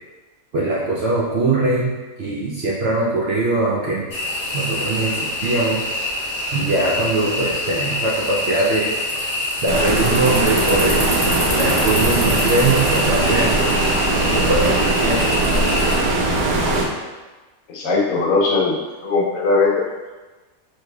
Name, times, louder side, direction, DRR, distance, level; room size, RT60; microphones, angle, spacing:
voice 1, 0.5-1.9 2.2-4.1 4.5-5.8 6.5-8.9 9.6-11.1 11.5-13.7 14.3-15.3, right 2 dB, 65° right, -5 dB, 0.6 m, -21 dB
sound 1, 4.1-16.0, left 1 dB, 25° left, 0.9 m, -25 dB
Stream, 9.7-16.9, right 2 dB, 85° right, 1.1 m, -20 dB
voice 2, 17.7-18.8 19.0-19.7, left 3 dB, 70° left, -2 dB, 1.1 m, -19 dB
4.5 x 3.1 x 2.3 m, 1.2 s
omnidirectional pair, 1.5 m